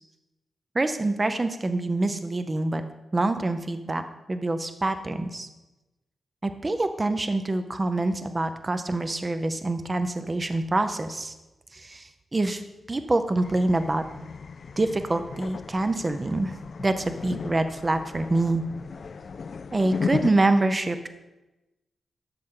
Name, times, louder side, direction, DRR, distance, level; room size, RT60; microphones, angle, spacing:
voice 1, 0.7-2.8 3.1-4.0 4.3-5.5 6.4-11.3 11.7-12.6 12.9-14.0 14.8-16.5 16.8-18.6 19.7-21.1, right 2 dB, 30° right, 9 dB, 0.6 m, -26 dB
sound 1, 13.4-20.3, left 5 dB, 60° left, 0.4 m, -36 dB
12.5 x 6.4 x 3.8 m, 1.0 s
cardioid pair, 80°, 0 cm